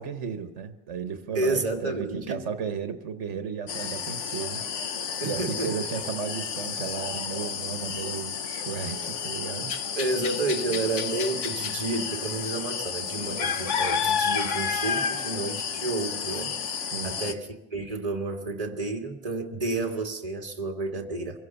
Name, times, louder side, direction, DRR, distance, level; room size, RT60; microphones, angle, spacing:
voice 1, 0.0-9.8 10.7-10.8 16.9-17.2, right 7 dB, 75° right, 1.5 m, -34 dB
voice 2, 1.3-2.4 5.2-5.8 10.0-21.4, right 3 dB, 30° right, 1.8 m, -31 dB
sound 1, 3.7-17.3, left 6 dB, 85° left, 1.3 m, -31 dB
24.5 x 16.5 x 6.9 m
omnidirectional pair, 1.2 m